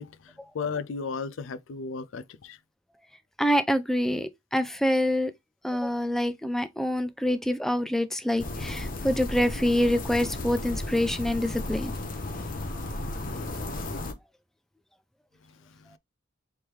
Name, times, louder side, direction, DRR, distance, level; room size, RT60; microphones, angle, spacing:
voice 1, 0.0-2.6 15.8-15.9, left 5 dB, 85° left, 0.4 m, -35 dB
voice 2, 3.4-5.3 5.6-12.0, equal, ahead, 0.4 m, -26 dB
sound 1, 8.4-14.1, left 2 dB, 45° left, 0.8 m, -34 dB
3.5 x 3.2 x 4.4 m
head